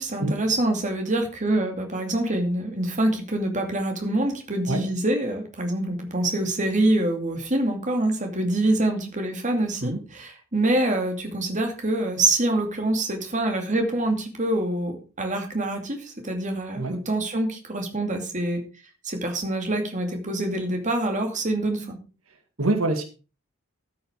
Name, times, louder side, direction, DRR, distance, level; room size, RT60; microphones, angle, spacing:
voice 1, 0.0-18.6 19.0-22.0, right 1 dB, 35° right, 4 dB, 2.5 m, -25 dB
voice 2, 22.6-23.0, right 2 dB, 90° right, 7 dB, 1.9 m, -24 dB
13.0 x 6.5 x 5.0 m, 0.34 s
head